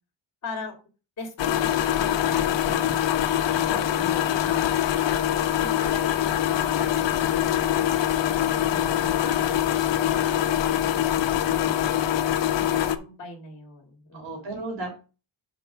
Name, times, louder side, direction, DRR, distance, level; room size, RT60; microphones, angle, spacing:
voice 1, 0.4-0.8 1.2-3.8 4.3-4.7 5.0-14.5, left 3 dB, 35° left, 1 dB, 2.4 m, -40 dB
sound 1, 1.4-13.0, left 11 dB, 60° left, 0.8 m, -24 dB
voice 2, 3.7-4.5 14.1-14.9, right 2 dB, 60° right, -1 dB, 3.5 m, -36 dB
5.4 x 5.3 x 6.0 m, 0.33 s
cardioid pair, 145°, 49 cm